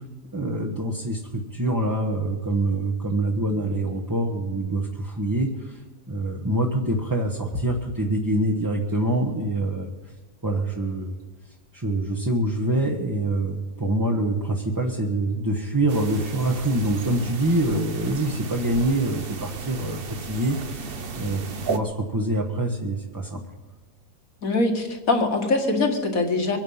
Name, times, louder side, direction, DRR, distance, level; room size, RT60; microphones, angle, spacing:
voice 1, 0.3-5.8 6.1-9.9 10.4-11.2 11.7-23.4, right 1 dB, 15° right, 0 dB, 1.1 m, -25 dB
sound 1, 15.9-21.8, right 4 dB, 45° right, 1.0 m, -34 dB
voice 2, 24.4-26.6, left 2 dB, 65° left, 3 dB, 2.3 m, -23 dB
23.5 x 9.1 x 5.6 m, 1.3 s
omnidirectional pair, 1.6 m